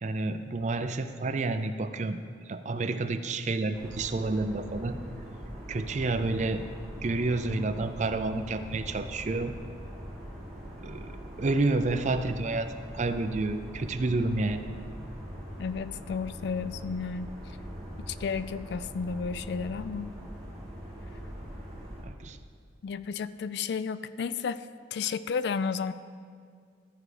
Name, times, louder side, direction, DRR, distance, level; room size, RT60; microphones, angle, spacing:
voice 1, 0.0-2.2 2.5-5.0 5.7-6.6 7.0-9.5 10.8-12.7 12.9-14.6 22.0-22.4, right 3 dB, 40° right, 9 dB, 0.4 m, -29 dB
sound 1, 3.7-22.0, equal, 5° left, 1.9 m, -42 dB
voice 2, 15.6-17.3 18.0-20.1 22.8-25.9, left 5 dB, 60° left, 14 dB, 0.3 m, -32 dB
14.0 x 4.8 x 4.9 m, 2.2 s
head